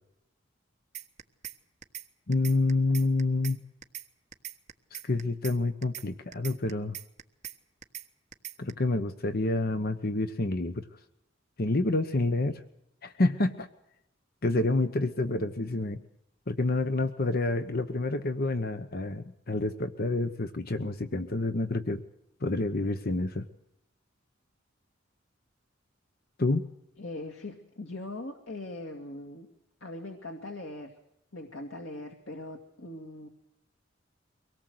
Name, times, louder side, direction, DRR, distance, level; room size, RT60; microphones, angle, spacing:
sound 1, 0.9-1.6 1.8-2.1 2.3-3.6 3.8-4.1 4.3-5.6 5.8-6.1 6.3-7.6 7.8-8.1 8.3-8.7, right 10 dB, 40° right, 1.3 m, -40 dB
voice 1, 2.3-3.6 4.9-7.0 8.6-10.9 11.6-12.6 13.0-13.7 14.4-16.0 16.5-22.0 22.4-23.5 26.4-26.7, left 2 dB, 50° left, 10 dB, 1.0 m, -28 dB
voice 2, 27.0-29.5 29.8-30.9 31.3-33.3, left 2 dB, 85° left, 3 dB, 2.3 m, -40 dB
24.0 x 18.0 x 7.9 m, 0.82 s
head